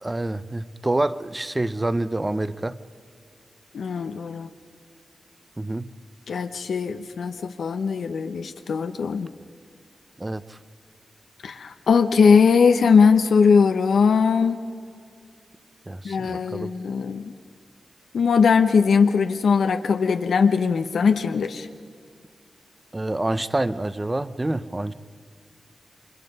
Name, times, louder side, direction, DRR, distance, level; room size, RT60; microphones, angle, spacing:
voice 1, 0.0-2.8 5.6-5.9 10.2-10.6 15.9-16.7 22.9-24.9, right 2 dB, 20° right, 0.7 m, -27 dB
voice 2, 3.7-4.5 6.3-9.3 11.4-14.6 16.0-17.2 18.1-21.7, left 5 dB, 85° left, 0.9 m, -20 dB
28.5 x 24.5 x 5.4 m
wide cardioid pair, 95°, 0 cm